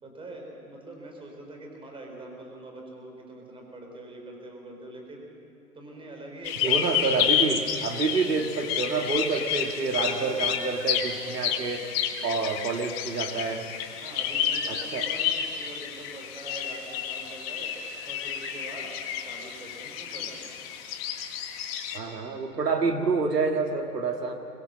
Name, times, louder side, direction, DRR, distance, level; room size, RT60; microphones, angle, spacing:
voice 1, 0.0-5.3 5.7-7.7 8.0-8.2 9.9-10.4 14.0-17.7 18.0-18.9 19.2-20.6 22.7-22.9, right 2 dB, 10° right, 1 dB, 4.1 m, -44 dB
sound 1, 6.4-22.0, left 8 dB, 40° left, 1.8 m, -30 dB
voice 2, 6.6-11.9 12.2-13.7 14.7-15.1 21.9-24.3, right 4 dB, 80° right, 4 dB, 1.9 m, -28 dB
23.5 x 20.5 x 6.4 m, 3.0 s
hypercardioid pair, 120°, 48 cm